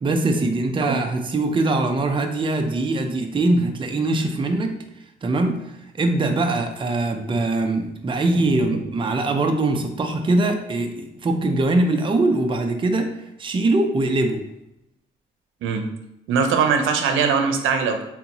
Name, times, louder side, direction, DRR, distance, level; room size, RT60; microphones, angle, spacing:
voice 1, 0.0-4.8 5.2-5.6 6.0-13.1 13.4-14.4, right 2 dB, 25° right, 4 dB, 0.6 m, -22 dB
voice 2, 16.3-18.0, right 6 dB, 85° right, 5 dB, 0.7 m, -21 dB
4.3 x 3.9 x 2.9 m, 0.85 s
cardioid pair, 90°, 20 cm